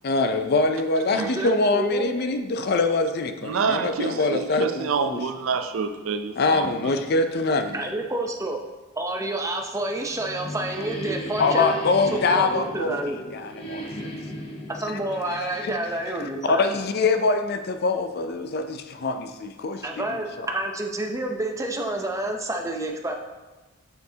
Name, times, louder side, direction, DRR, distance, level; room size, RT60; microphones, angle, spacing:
voice 1, 0.0-5.2 6.4-7.8 11.4-12.9 13.3-13.9 15.3-15.7 16.2-20.0 20.4-20.5, left 3 dB, 50° left, 8 dB, 0.5 m, -24 dB
voice 2, 1.2-2.1 7.7-8.6 9.0-11.8 12.1-13.2 14.7-16.8 19.8-23.1, right 1 dB, 15° right, 2 dB, 0.6 m, -29 dB
voice 3, 3.4-6.9, right 5 dB, 85° right, 8 dB, 0.5 m, -27 dB
sound 1, 9.8-16.5, right 1 dB, 30° left, 1.1 m, -35 dB
6.9 x 6.5 x 2.8 m, 1.2 s
head